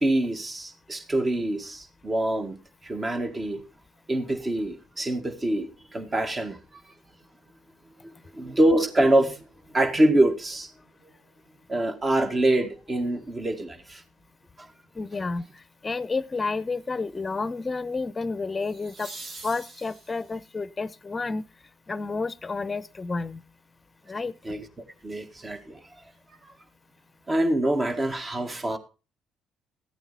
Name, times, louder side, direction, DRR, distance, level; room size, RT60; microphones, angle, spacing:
voice 1, 0.0-2.6 2.8-3.6 4.1-6.6 8.0-9.4 9.7-10.7 11.7-14.0 14.6-14.7 24.4-24.7 25.0-25.8 27.3-28.8, right 1 dB, 30° right, 1.9 m, -25 dB
voice 2, 14.9-19.1 19.4-21.4 21.9-23.4 24.1-24.3, left 3 dB, 30° left, 0.8 m, -30 dB
sound 1, 15.6-15.9 18.6-20.5 23.4-23.5, right 2 dB, 55° right, 3.0 m, -44 dB
15.0 x 9.0 x 4.2 m
supercardioid pair, 65°, 0 cm